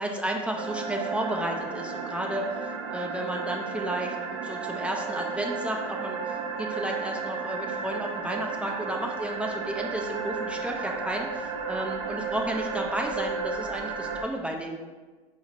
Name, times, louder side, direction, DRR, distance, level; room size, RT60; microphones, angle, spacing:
voice 1, 0.0-2.5 2.9-6.2 6.6-14.8, right 1 dB, 5° right, 1 dB, 0.4 m, -32 dB
sound 1, 0.5-14.2, right 5 dB, 70° right, 0.5 m, -33 dB
4.7 x 3.0 x 2.8 m, 1.3 s
hypercardioid pair, 85°, 17 cm